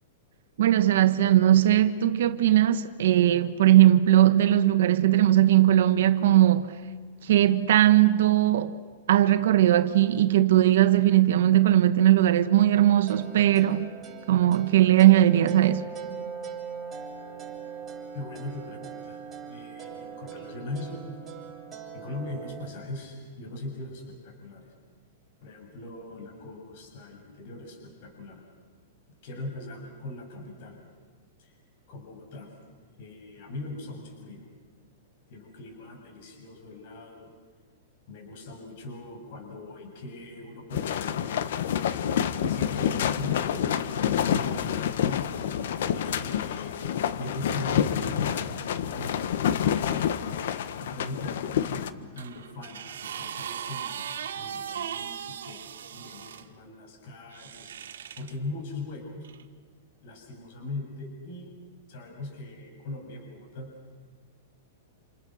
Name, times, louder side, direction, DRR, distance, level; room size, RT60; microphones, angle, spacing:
voice 1, 0.6-6.8 7.2-8.7 9.1-13.9 14.3-15.8, right 13 dB, 70° right, 1.3 m, -19 dB
sound 1, 13.1-22.7, right 7 dB, 15° right, 4.0 m, -41 dB
voice 2, 18.1-21.4 21.9-24.7 25.4-28.4 29.2-30.8 31.4-31.6 31.9-32.5 33.0-34.4 35.3-37.3 38.1-41.5 42.4-45.2 45.9-50.1 50.8-54.1 54.4-55.6 55.9-57.8 58.1-59.3 60.0-61.5 61.9-63.7, left 2 dB, 50° left, 7.2 m, -40 dB
sound 2, 40.7-51.9, left 9 dB, 70° left, 1.4 m, -28 dB
sound 3, 52.2-56.4 57.3-58.3 59.2-59.4, right 9 dB, 90° right, 1.8 m, -38 dB
29.0 x 28.5 x 6.5 m
supercardioid pair, 155°, 0 cm